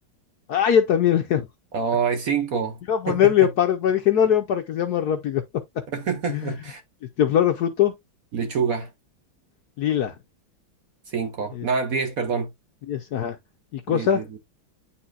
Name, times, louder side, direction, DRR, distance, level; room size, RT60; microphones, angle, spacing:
voice 1, 0.5-1.4 2.9-5.4 6.3-6.5 7.2-7.9 9.8-10.1 11.5-11.7 12.9-13.4 13.7-14.2, left 9 dB, 70° left, 1.0 m, -21 dB
voice 2, 1.7-2.8 3.1-3.3 5.9-6.8 8.3-8.9 11.1-12.5 13.9-14.4, right 6 dB, 55° right, 1.1 m, -26 dB
9.5 x 4.3 x 2.3 m
omnidirectional pair, 2.2 m